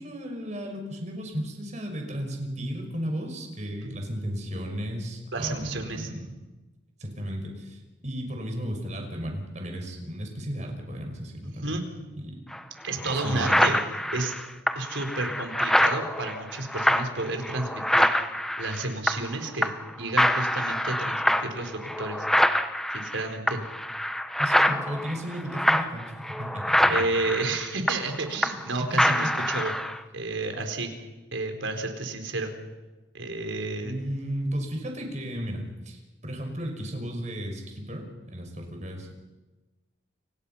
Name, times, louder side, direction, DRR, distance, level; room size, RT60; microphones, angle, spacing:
voice 1, 0.0-6.3 7.0-11.8 12.2-12.4 13.0-13.6 24.4-27.0 28.8-29.5 33.8-39.1, equal, 35° right, 3 dB, 5.8 m, -34 dB
voice 2, 5.3-6.1 11.6-11.8 12.8-13.8 14.1-14.3 14.7-18.1 18.6-22.3 22.9-23.6 26.9-29.7 30.1-30.9 31.3-32.5 33.1-33.9, right 2 dB, 80° right, 4 dB, 4.4 m, -31 dB
sound 1, 12.5-12.6 13.0-19.4 19.6-19.9 20.2-28.7 29.0-30.0, equal, ahead, 0.9 m, -25 dB
29.5 x 25.5 x 5.7 m, 1.1 s
head